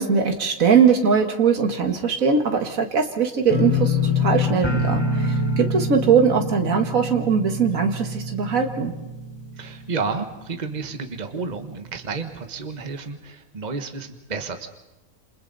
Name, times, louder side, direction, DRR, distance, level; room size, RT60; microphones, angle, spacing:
voice 1, 0.0-8.9, right 6 dB, 80° right, 4 dB, 2.1 m, -21 dB
sound 1, 3.5-10.4 10.7-11.2 11.6-11.7, left 2 dB, 20° left, 1.4 m, -25 dB
voice 2, 9.6-14.7, right 4 dB, 35° right, 6 dB, 1.4 m, -31 dB
28.0 x 28.0 x 4.1 m, 1.0 s
omnidirectional pair, 1.4 m